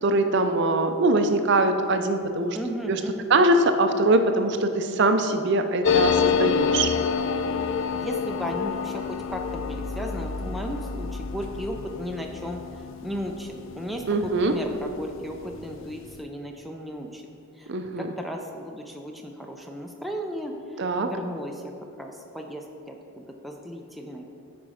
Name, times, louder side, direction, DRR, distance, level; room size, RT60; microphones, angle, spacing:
voice 1, 0.0-2.6 2.9-3.0 3.3-6.9 14.1-14.5 17.7-18.1 20.8-21.1, right 2 dB, 50° right, 7 dB, 0.5 m, -22 dB
voice 2, 2.5-3.3 7.9-12.6 13.0-17.3 17.6-17.7 18.0-21.7 22.0-24.4, equal, ahead, 1 dB, 0.4 m, -35 dB
sound 1, 5.8-15.0 15.3-15.4 15.6-16.2, left 6 dB, 60° left, 0.4 m, -28 dB
8.8 x 5.1 x 4.9 m, 2.5 s
head